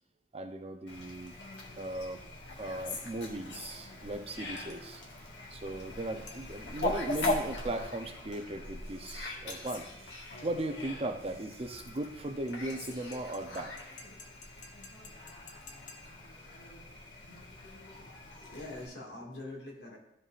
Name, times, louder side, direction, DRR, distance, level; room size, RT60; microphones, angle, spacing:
voice 1, 0.3-1.3 1.8-2.2 2.6-5.0 5.5-10.2 10.4-13.7, right 1 dB, 35° right, 6 dB, 0.6 m, -37 dB
Fowl, 0.9-18.9, left 2 dB, 90° left, 1.5 m, -41 dB
sound 1, 6.3-6.7 9.5-10.0 12.5-16.3, left 3 dB, 45° left, 0.9 m, -54 dB
voice 2, 17.4-18.1 18.4-20.0, left 2 dB, 70° left, -1 dB, 2.0 m, -45 dB
12.5 x 5.3 x 2.5 m, 0.83 s
head